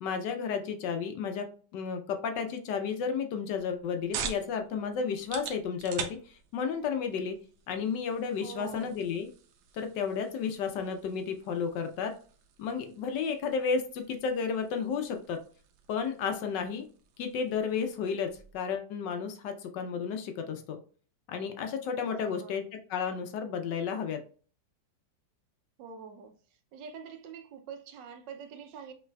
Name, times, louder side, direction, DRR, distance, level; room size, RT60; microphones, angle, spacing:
voice 1, 0.0-1.5 1.7-7.4 7.7-9.3 9.7-12.1 12.6-15.4 15.9-16.8 17.2-20.8 21.3-22.6 22.9-24.2, left 6 dB, 75° left, 1.2 m, -32 dB
sound 1, 3.5-18.6, right 7 dB, 90° right, 1.4 m, -46 dB
voice 2, 8.4-9.0 22.1-22.7 25.8-26.4 26.7-28.9, right 6 dB, 75° right, 1.2 m, -45 dB
5.5 x 3.3 x 2.2 m
omnidirectional pair, 2.1 m